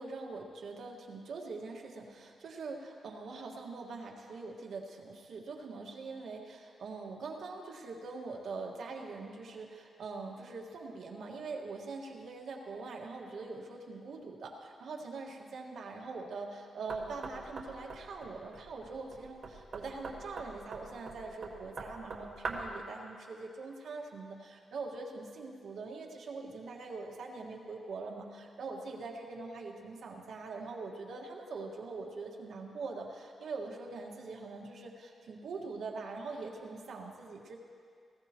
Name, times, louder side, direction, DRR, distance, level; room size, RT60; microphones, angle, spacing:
voice 1, 0.0-37.6, right 3 dB, 75° right, 0 dB, 1.7 m, -43 dB
Knock, 16.9-22.8, right 3 dB, 55° right, 1.5 m, -43 dB
19.5 x 15.5 x 3.0 m, 2.3 s
wide cardioid pair, 130°, 0 cm